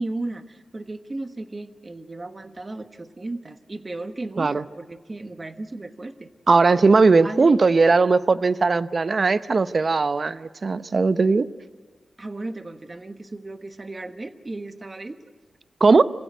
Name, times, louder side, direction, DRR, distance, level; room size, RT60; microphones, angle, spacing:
voice 1, 0.0-6.3 7.0-7.6 12.2-15.3, right 2 dB, 30° right, 8 dB, 1.3 m, -35 dB
voice 2, 6.5-11.5 15.8-16.0, right 4 dB, 50° right, 14 dB, 0.7 m, -18 dB
26.5 x 16.0 x 9.3 m, 1.5 s
wide cardioid pair, 85°, 0 cm